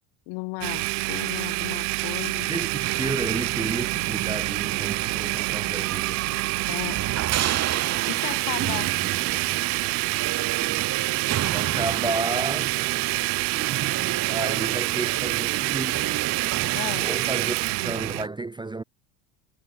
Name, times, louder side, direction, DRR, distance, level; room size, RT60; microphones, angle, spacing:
voice 1, 0.3-2.5 6.7-7.3 8.1-8.9 16.7-17.1, left 34 dB, 70° left, 2.8 m, -35 dB
Domestic sounds home sounds, 0.6-18.2, right 31 dB, 75° right, 0.5 m, -27 dB
voice 2, 2.5-6.2 11.4-12.9 14.3-16.2 17.0-17.6 17.8-18.8, right 2 dB, 10° right, 0.7 m, -32 dB
sound 1, 2.8-18.3, right 11 dB, 35° right, 1.1 m, -33 dB
supercardioid pair, 95°, 45 cm